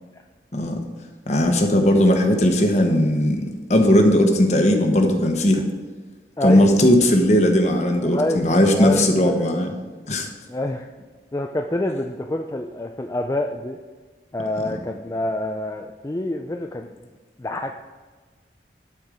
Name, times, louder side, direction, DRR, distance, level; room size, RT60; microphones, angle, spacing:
voice 1, 1.3-5.7 6.4-9.7 10.1-10.3, left 1 dB, 40° left, 4 dB, 1.1 m, -18 dB
voice 2, 6.4-6.7 8.0-9.4 10.5-10.9 11.3-13.8 14.3-17.1 17.4-17.8, left 1 dB, 20° left, 3 dB, 0.3 m, -27 dB
12.0 x 4.5 x 5.0 m, 1.4 s
head